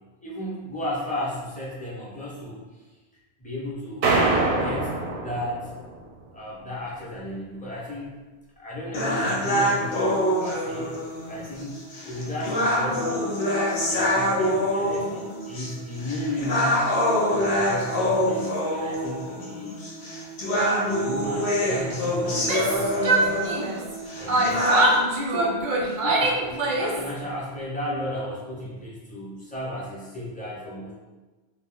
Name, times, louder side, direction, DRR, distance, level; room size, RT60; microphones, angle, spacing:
voice 1, 0.2-2.6 3.4-4.9 5.2-5.7 6.3-8.1 8.6-10.9 11.3-11.8 12.0-13.4 13.9-16.9 17.3-19.8 20.5-23.4 24.2-24.9 25.3-25.7 26.0-31.0, left 1 dB, 10° left, -7 dB, 0.6 m, -34 dB
sound 1, 4.0-6.0, right 3 dB, 90° right, 0.8 m, -24 dB
sound 2, 8.9-25.0, equal, 85° left, 1.0 m, -25 dB
Yell, 22.3-23.9 24.3-27.1, right 2 dB, 60° right, 0.6 m, -24 dB
2.4 x 2.1 x 3.7 m, 1.2 s
omnidirectional pair, 1.1 m